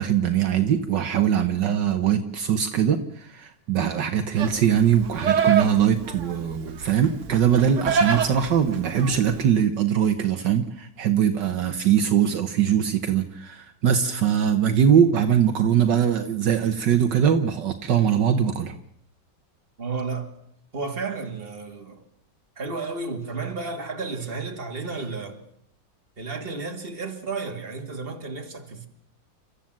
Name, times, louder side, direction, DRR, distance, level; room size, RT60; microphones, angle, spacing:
voice 1, 0.0-18.7, right 8 dB, 70° right, 1.7 m, -22 dB
Livestock farm animals working animals, 4.4-9.5, right 6 dB, 45° right, 1.3 m, -27 dB
voice 2, 19.8-20.3 20.7-22.0 22.6-25.4 26.2-28.9, right 4 dB, 30° right, 2.5 m, -32 dB
30.0 x 13.5 x 7.5 m
omnidirectional pair, 2.0 m